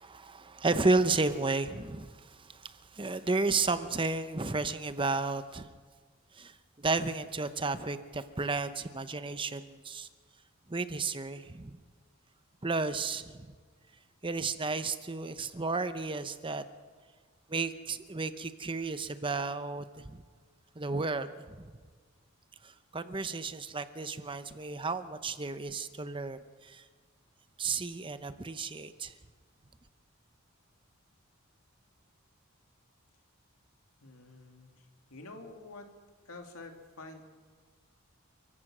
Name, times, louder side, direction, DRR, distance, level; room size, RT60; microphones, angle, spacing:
voice 1, 0.0-5.7 6.3-10.1 10.7-11.8 12.6-13.4 14.2-16.6 17.5-20.2 20.8-21.7 22.6-26.8 27.6-29.1, right 3 dB, 25° right, 11 dB, 0.8 m, -33 dB
voice 2, 34.0-34.7 35.1-35.9 36.3-37.3, left 2 dB, 80° left, 4 dB, 2.6 m, -48 dB
30.0 x 15.5 x 6.1 m, 1.5 s
head